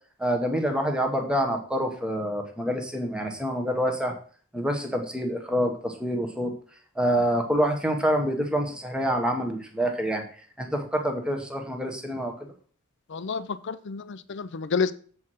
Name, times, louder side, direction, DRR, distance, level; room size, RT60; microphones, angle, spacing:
voice 1, 0.2-4.1 4.5-6.5 6.9-10.2 10.6-12.5, equal, 5° right, 3 dB, 1.1 m, -27 dB
voice 2, 13.1-14.9, left 5 dB, 55° left, 14 dB, 0.5 m, -29 dB
7.4 x 4.7 x 6.1 m, 0.43 s
head